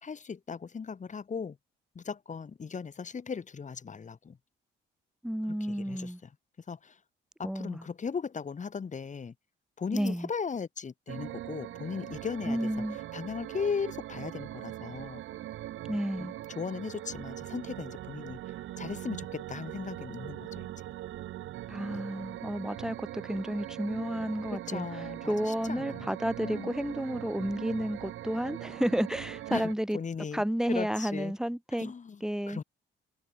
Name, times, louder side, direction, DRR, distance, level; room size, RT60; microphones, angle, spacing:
voice 1, 0.0-1.6 1.9-4.4 5.7-6.1 6.7-6.9 7.4-9.3 9.8-12.7 13.1-15.2 16.2-16.3 16.5-18.4 18.8-20.7 24.5-26.1 26.4-26.7 29.5-29.6 29.9-30.4 30.7-31.3 31.8-32.2 32.5-32.6, left 5 dB, 40° left, 3.3 m, -37 dB
voice 2, 5.2-6.2 7.4-7.9 9.9-10.3 12.5-13.0 15.8-16.3 21.7-30.0 30.3-31.9 32.2-32.6, equal, 5° right, 5.4 m, -31 dB
sound 1, 11.1-29.7, right 14 dB, 80° right, 3.9 m, -41 dB
cardioid pair, 90°, 20 cm